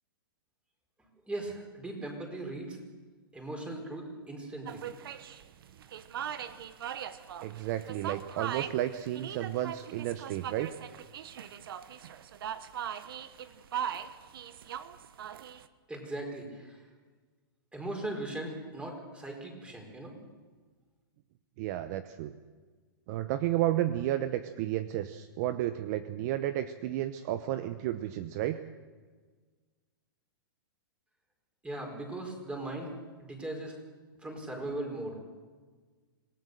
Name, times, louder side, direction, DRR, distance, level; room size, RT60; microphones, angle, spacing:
voice 1, 1.3-2.8 3.3-4.8 15.9-16.8 17.7-20.1 31.6-32.9 33.2-33.8 34.2-35.2, right 2 dB, 10° right, 2 dB, 4.7 m, -38 dB
sound 1, 4.7-15.7, right 9 dB, 70° right, 1.2 m, -40 dB
voice 2, 7.4-10.7 21.6-22.3 23.1-28.6, right 13 dB, 45° right, 12 dB, 0.9 m, -32 dB
26.5 x 17.5 x 6.8 m, 1.5 s
hypercardioid pair, 130°, 12 cm